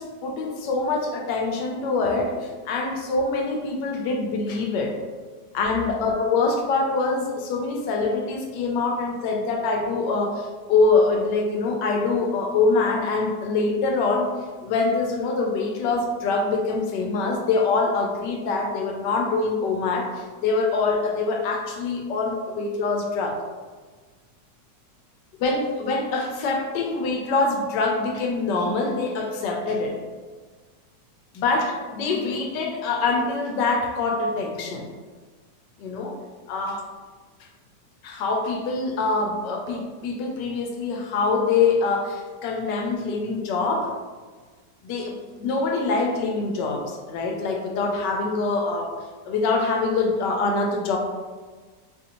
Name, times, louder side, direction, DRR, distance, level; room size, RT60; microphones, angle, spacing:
voice 1, 0.0-5.0 5.5-14.3 14.6-23.4 25.4-30.0 31.3-34.9 35.8-36.2 36.5-36.8 38.0-43.9 44.8-48.9 49.2-51.0, left 3 dB, 75° left, 1 dB, 1.2 m, -24 dB
4.8 x 2.6 x 2.8 m, 1.4 s
omnidirectional pair, 2.0 m